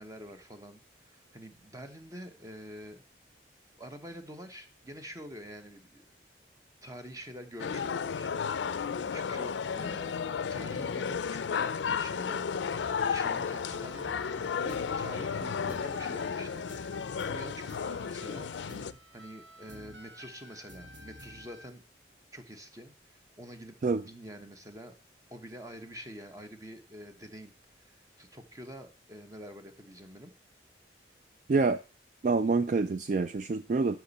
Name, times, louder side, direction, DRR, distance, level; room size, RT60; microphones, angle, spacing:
voice 1, 0.0-3.0 3.8-6.0 6.8-10.2 10.5-12.4 13.1-14.3 14.6-18.5 19.1-21.8 22.3-23.8 24.1-24.9 25.3-30.3, equal, 20° right, 7 dB, 1.0 m, -46 dB
sound 1, 7.6-18.9, left 6 dB, 90° left, 0.4 m, -33 dB
sound 2, 12.6-21.7, equal, 90° right, 1.5 m, -51 dB
voice 2, 31.5-31.8 32.2-34.0, right 4 dB, 45° right, 11 dB, 0.3 m, -27 dB
10.5 x 6.1 x 4.1 m, 0.35 s
head